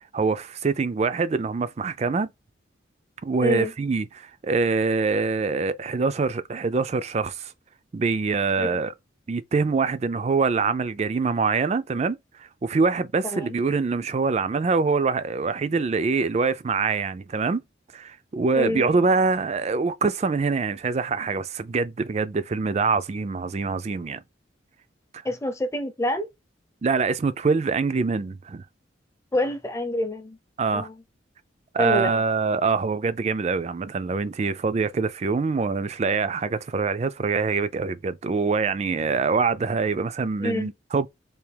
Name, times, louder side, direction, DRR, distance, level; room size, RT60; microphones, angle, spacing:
voice 1, 0.1-2.3 3.2-7.5 7.9-8.9 9.3-17.6 17.9-24.2 25.1-25.2 26.8-28.6 30.6-30.9 31.7-41.1, right 4 dB, 35° right, 0.3 m, -24 dB
voice 2, 3.4-3.7 8.6-8.8 13.3-13.6 18.5-18.9 25.2-26.3 29.3-30.4 30.7-30.9 31.8-32.1 40.4-40.7, left 1 dB, 15° left, 0.5 m, -27 dB
3.4 x 2.8 x 3.3 m
head